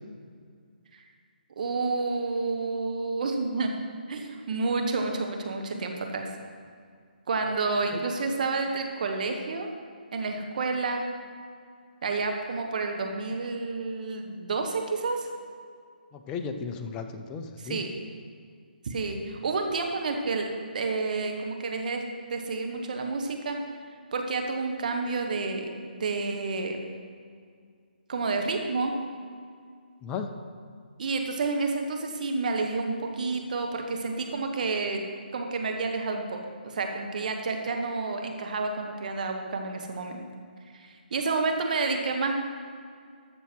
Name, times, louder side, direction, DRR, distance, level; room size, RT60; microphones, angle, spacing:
voice 1, 1.6-3.7 4.1-6.3 7.3-9.7 10.1-11.0 12.0-15.3 17.6-17.9 18.8-20.5 20.7-22.0 22.3-23.6 24.1-26.8 28.1-28.9 31.0-35.0 35.3-40.3 40.7-42.3, right 3 dB, 55° right, 3 dB, 1.3 m, -30 dB
voice 2, 16.1-17.8 30.0-30.3, left 5 dB, 15° left, 6 dB, 0.6 m, -35 dB
13.5 x 6.9 x 4.6 m, 2.1 s
hypercardioid pair, 150°, 5 cm